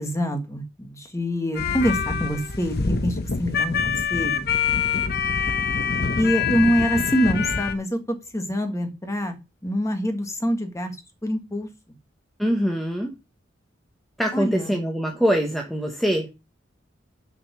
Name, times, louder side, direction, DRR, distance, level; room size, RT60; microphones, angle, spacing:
voice 1, 0.0-4.5 6.2-9.4 9.6-11.0 11.2-11.7 14.3-14.8, equal, 15° left, 6 dB, 1.5 m, -25 dB
sound 1, 1.5-7.7, left 6 dB, 55° left, 0.9 m, -25 dB
voice 2, 12.4-13.1 14.2-16.3, equal, ahead, 2 dB, 1.1 m, -23 dB
6.8 x 5.2 x 6.1 m, 0.27 s
head